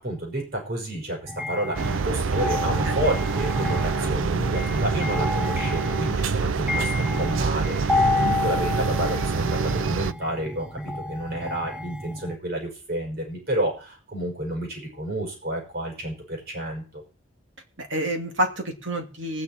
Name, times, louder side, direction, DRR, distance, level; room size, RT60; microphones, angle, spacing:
voice 1, 0.0-16.8, right 1 dB, 55° right, 1 dB, 5.5 m, -30 dB
sound 1, 1.3-12.4, left 3 dB, 5° right, 0.8 m, -30 dB
sound 2, 1.8-10.1, right 4 dB, 85° right, 0.6 m, -26 dB
voice 2, 8.1-8.4 17.8-19.4, right 1 dB, 70° right, 3 dB, 2.7 m, -28 dB
19.5 x 9.7 x 4.5 m, 0.37 s
head